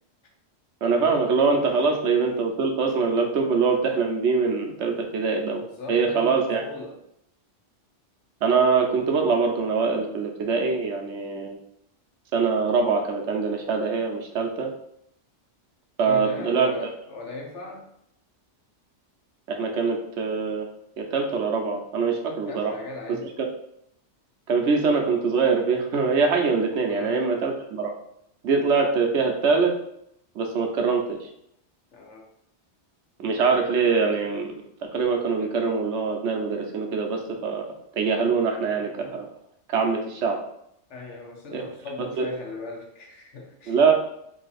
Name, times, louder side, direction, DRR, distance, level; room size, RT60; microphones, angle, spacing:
voice 1, 0.8-5.6 5.9-6.6 8.4-11.6 12.3-14.7 16.0-16.7 19.5-20.7 21.0-22.7 23.4-23.5 24.5-27.9 28.4-29.7 30.3-31.3 33.2-34.5 34.8-37.7 38.0-39.3 39.7-40.4 41.5-41.6 42.0-42.3 43.7-43.9, right 5 dB, 75° right, 2 dB, 1.0 m, -23 dB
voice 2, 1.6-2.0 5.6-7.0 16.1-17.9 22.5-23.3 26.9-27.3 31.9-32.2 40.9-43.8, left 3 dB, 75° left, 0 dB, 1.2 m, -38 dB
3.2 x 2.8 x 4.0 m, 0.74 s
omnidirectional pair, 1.2 m